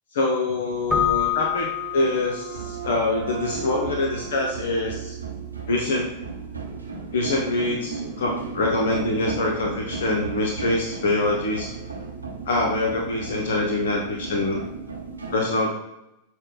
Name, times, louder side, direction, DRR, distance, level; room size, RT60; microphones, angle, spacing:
voice 1, 0.1-5.1 5.7-6.1 7.1-11.7 12.5-14.6 15.3-15.8, left 2 dB, 60° left, -1 dB, 0.7 m, -25 dB
sound 1, 0.7-15.4, right 4 dB, 80° right, 0.7 m, -35 dB
Keyboard (musical), 0.9-2.7, left 10 dB, 15° left, 0.5 m, -26 dB
Wind instrument woodwind instrument, 0.9-5.9, right 12 dB, 55° right, 0.4 m, -39 dB
6.3 x 2.2 x 3.8 m, 0.89 s
figure-of-eight pair, 90°, 0 cm